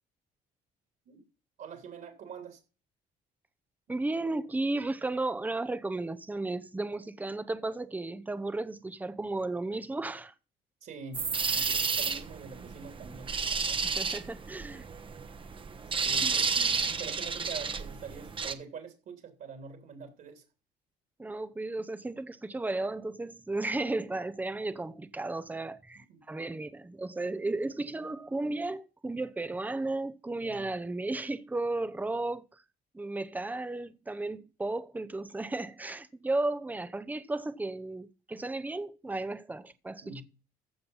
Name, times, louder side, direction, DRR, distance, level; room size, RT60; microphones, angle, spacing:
voice 1, 1.6-2.6 10.8-13.3 13.7-13.8 15.9-16.5 17.0-20.4 25.9-26.2 30.4-30.7 40.0-40.2, right 5 dB, 60° right, 3.3 m, -45 dB
voice 2, 3.9-10.3 11.6-11.8 13.8-14.9 16.2-16.9 21.2-32.6 32.9-40.2, right 2 dB, 10° right, 0.8 m, -34 dB
sound 1, 11.1-18.5, right 5 dB, 30° right, 1.1 m, -31 dB
15.0 x 5.8 x 5.6 m
cardioid pair, 110°, 17 cm